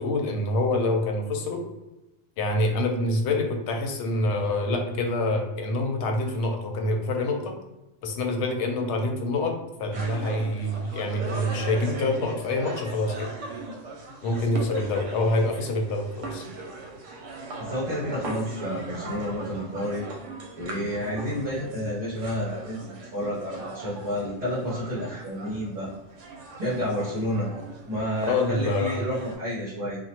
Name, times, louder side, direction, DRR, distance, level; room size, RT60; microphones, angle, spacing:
voice 1, 0.0-1.6 2.4-7.5 8.0-13.3 14.2-16.4 28.2-29.0, left 2 dB, 75° left, 3 dB, 0.9 m, -26 dB
sound 1, 9.9-29.4, right 3 dB, 80° right, 0.9 m, -39 dB
voice 2, 17.6-20.1 20.6-25.9 26.6-27.5 27.8-30.0, equal, 45° right, -10 dB, 1.1 m, -30 dB
2.9 x 2.3 x 2.8 m, 1.0 s
omnidirectional pair, 1.2 m